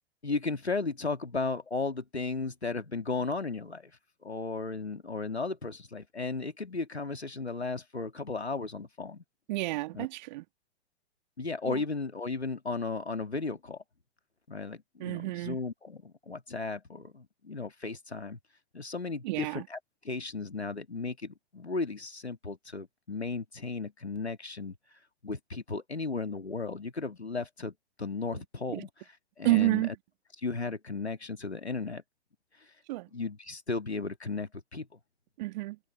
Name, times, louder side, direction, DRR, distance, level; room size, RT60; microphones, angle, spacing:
voice 1, 0.2-3.9 4.2-9.2 9.9-10.1 11.4-13.8 14.5-18.4 18.7-19.8 20.0-24.8 25.2-28.9 29.4-29.9 30.4-32.0 33.1-35.0, left 3 dB, 85° left, 2.5 m, -35 dB
voice 2, 9.5-10.4 11.6-11.8 15.0-15.6 19.2-19.7 28.3-28.4 28.7-28.9 29.4-29.9 32.9-33.1 35.4-35.8, right 20 dB, 45° right, 3.0 m, -30 dB
figure-of-eight pair, 105°, 32 cm